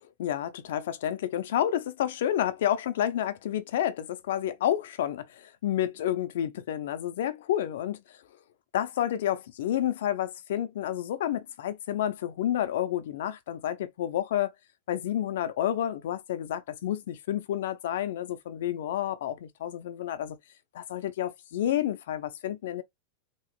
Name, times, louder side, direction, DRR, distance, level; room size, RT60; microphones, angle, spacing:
voice 1, 0.2-8.2 8.7-14.5 14.9-20.4 20.7-22.8, left 11 dB, 80° left, 0.6 m, -30 dB
3.2 x 3.0 x 3.0 m
supercardioid pair, 135°, 0 cm